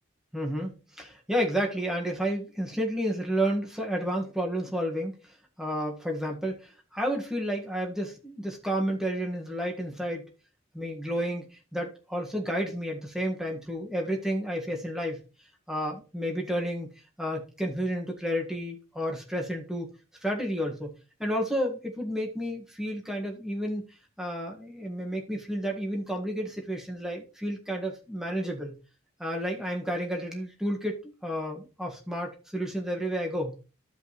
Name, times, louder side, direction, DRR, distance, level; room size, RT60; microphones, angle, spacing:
voice 1, 0.3-10.3 10.7-11.4 11.7-15.2 15.7-16.9 17.2-19.9 20.2-20.9 21.2-28.8 29.2-33.5, equal, 5° right, 0 dB, 1.8 m, -31 dB
15.0 x 5.2 x 3.2 m, 0.33 s
head